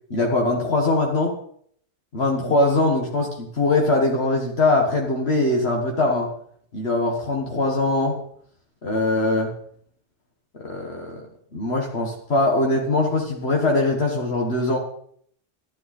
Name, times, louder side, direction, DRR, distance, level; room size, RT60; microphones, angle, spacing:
voice 1, 0.1-1.4 2.1-6.3 6.7-8.2 8.8-9.5 10.6-11.3 11.5-14.8, left 2 dB, 60° left, 0 dB, 1.8 m, -22 dB
12.0 x 10.5 x 4.3 m, 0.63 s
omnidirectional pair, 1.2 m